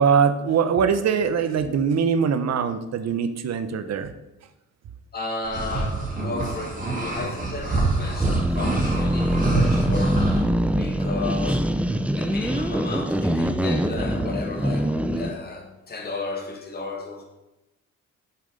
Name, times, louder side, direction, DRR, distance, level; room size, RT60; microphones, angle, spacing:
voice 1, 0.0-4.1, right 6 dB, 60° right, 10 dB, 0.9 m, -22 dB
voice 2, 5.1-10.3 10.8-11.7 12.0-14.9 15.1-17.2, left 3 dB, 30° left, 0 dB, 1.9 m, -33 dB
sound 1, 5.4-10.4, right 3 dB, 25° right, 3.3 m, -26 dB
sound 2, 8.2-15.4, equal, 5° right, 0.5 m, -24 dB
7.8 x 6.9 x 5.1 m, 0.96 s
cardioid pair, 90°, 30 cm